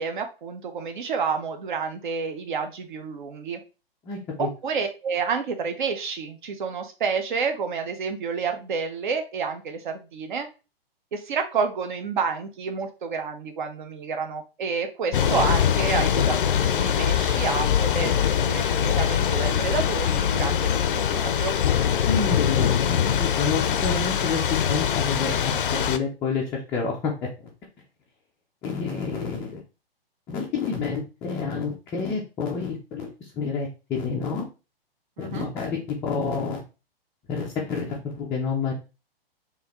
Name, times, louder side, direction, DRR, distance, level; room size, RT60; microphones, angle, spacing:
voice 1, 0.0-3.6 4.4-10.5 11.1-21.5 35.2-35.5, right 5 dB, 55° right, 6 dB, 0.9 m, -29 dB
voice 2, 4.0-4.5 22.1-27.5 28.6-29.6 30.3-33.1 33.3-34.5 35.2-36.6 37.3-38.7, left 5 dB, 10° left, -3 dB, 0.4 m, -29 dB
Thunder / Rain, 15.1-26.0, left 8 dB, 60° left, 0.5 m, -23 dB
4.7 x 2.7 x 3.0 m, 0.31 s
figure-of-eight pair, 115°, 30 cm